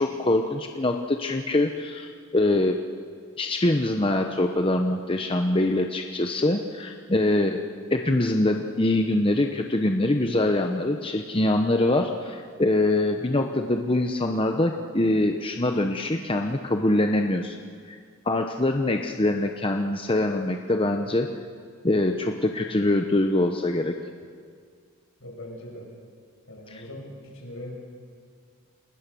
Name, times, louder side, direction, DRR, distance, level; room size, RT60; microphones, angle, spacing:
voice 1, 0.0-2.8 3.4-7.6 7.9-17.6 17.9-18.0 18.3-21.3 21.8-24.0 26.7-26.8, left 1 dB, 25° left, 4 dB, 0.9 m, -24 dB
voice 2, 25.2-25.9 26.5-27.8, left 1 dB, 70° left, 0 dB, 6.3 m, -40 dB
29.0 x 20.0 x 7.0 m, 2.1 s
head